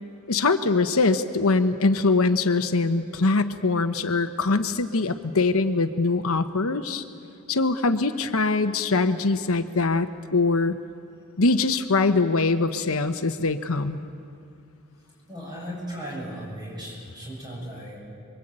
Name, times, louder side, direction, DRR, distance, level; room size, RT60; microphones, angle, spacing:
voice 1, 0.3-7.0 7.5-10.8 11.4-14.0, left 3 dB, 70° left, 8 dB, 1.0 m, -23 dB
voice 2, 15.3-18.0, equal, 20° right, -3 dB, 7.6 m, -36 dB
27.5 x 23.0 x 8.9 m, 2.5 s
head